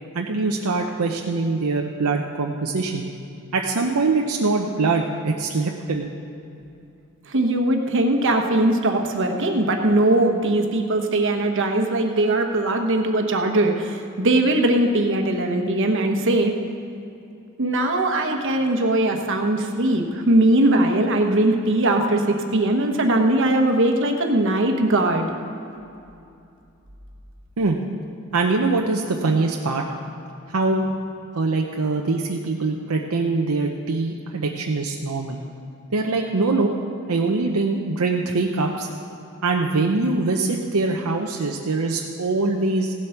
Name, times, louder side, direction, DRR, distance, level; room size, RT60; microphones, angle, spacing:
voice 1, 0.1-3.1 3.5-6.1 27.6-27.8 28.3-29.8 30.5-30.9 31.3-35.4 35.9-36.7 37.1-38.9 39.4-42.9, right 3 dB, 80° right, 1 dB, 0.7 m, -23 dB
voice 2, 7.3-16.5 17.6-25.3, right 1 dB, 60° right, 4 dB, 1.2 m, -20 dB
16.5 x 7.7 x 5.8 m, 2.6 s
head